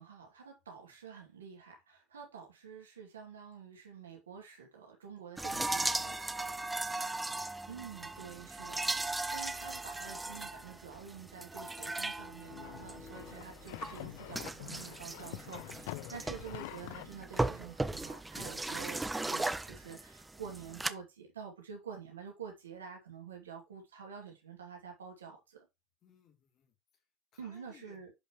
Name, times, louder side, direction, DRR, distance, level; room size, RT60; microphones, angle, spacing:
voice 1, 0.0-6.2 7.7-25.7 27.4-28.1, right 7 dB, 75° right, 2.5 m, -48 dB
sound 1, 5.4-20.9, right 2 dB, 10° right, 0.7 m, -38 dB
voice 2, 6.7-7.5 8.0-8.1 26.0-27.0 27.3-28.0, left 8 dB, 40° left, 3.1 m, -63 dB
sound 2, 12.5-17.1, left 17 dB, 60° left, 0.4 m, -46 dB
11.0 x 5.4 x 3.1 m
figure-of-eight pair, 65°, 0 cm